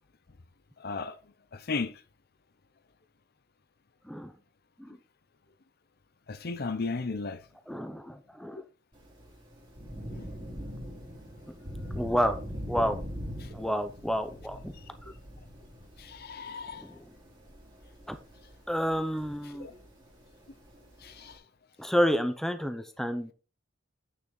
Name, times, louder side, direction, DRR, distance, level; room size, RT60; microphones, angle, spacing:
voice 1, 0.8-1.2 1.5-1.9 6.3-7.4 10.1-10.3 13.4-13.5 16.0-16.9 19.6-19.7 21.0-21.4, left 4 dB, 50° left, 0.7 m, -35 dB
voice 2, 7.7-8.6 12.0-12.4 12.7-13.0 13.5-14.7 16.8-16.9 18.1-18.2 18.7-19.7 21.8-23.3, equal, ahead, 0.7 m, -29 dB
Thunder / Rain, 8.9-21.3, equal, 25° right, 2.5 m, -43 dB
9.3 x 6.2 x 3.9 m
head